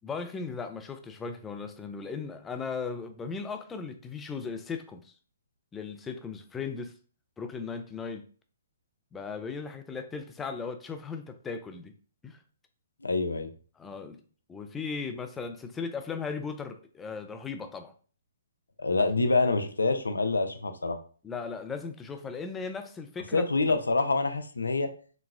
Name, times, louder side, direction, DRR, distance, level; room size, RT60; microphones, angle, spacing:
voice 1, 0.0-5.1 5.7-6.9 7.4-8.2 9.1-11.9 12.2-12.4 13.8-14.2 14.5-17.9 21.2-23.5, left 5 dB, 10° left, 0.4 m, -37 dB
voice 2, 13.0-13.5 18.8-21.0 23.3-24.9, left 3 dB, 80° left, 0.5 m, -26 dB
4.0 x 2.1 x 2.4 m
figure-of-eight pair, 130°, 0 cm